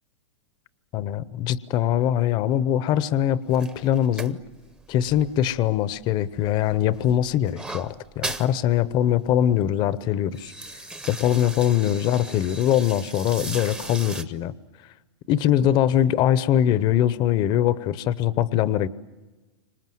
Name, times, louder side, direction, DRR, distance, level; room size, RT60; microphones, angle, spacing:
voice 1, 0.9-4.4 4.9-10.5 11.1-14.5 15.3-18.9, left 11 dB, 30° left, 17 dB, 0.8 m, -22 dB
sound 1, 3.5-6.0 6.4-8.5 8.9-9.0 9.3-9.7 10.1-14.2, right 2 dB, 5° right, 0.8 m, -38 dB
29.0 x 26.0 x 7.8 m, 1.2 s
hypercardioid pair, 150°, 15 cm